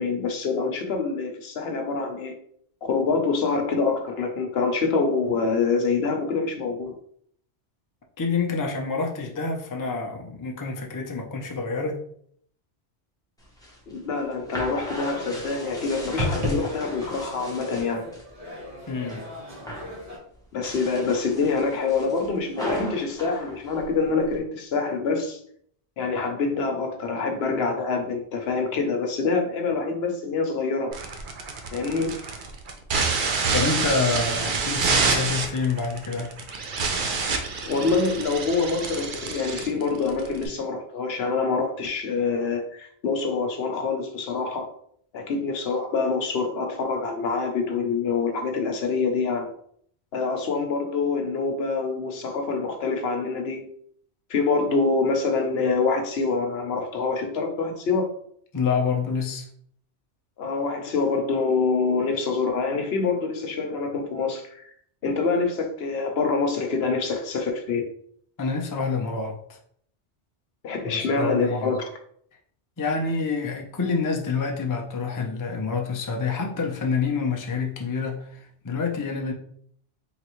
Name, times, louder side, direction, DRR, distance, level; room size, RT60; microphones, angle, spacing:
voice 1, 0.0-2.3 2.8-7.0 13.9-18.1 20.5-25.4 26.0-31.0 31.7-32.1 37.7-44.7 45.1-49.5 50.1-53.6 54.3-58.1 60.4-64.6 65.0-67.9 70.6-71.8, left 4 dB, 65° left, 0.9 m, -26 dB
voice 2, 8.2-12.0 18.9-19.2 33.5-36.3 58.5-59.5 68.4-69.6 70.9-71.7 72.8-79.3, left 4 dB, 35° left, 0.3 m, -27 dB
sound 1, 13.4-18.3 18.7-19.2 19.5-20.0 20.5-24.4, left 1 dB, 5° left, 0.8 m, -37 dB
sound 2, 14.9-20.2, left 1 dB, 35° right, 1.2 m, -34 dB
sound 3, 30.9-40.5, right 4 dB, 55° right, 0.7 m, -27 dB
4.0 x 3.2 x 3.0 m
omnidirectional pair, 1.2 m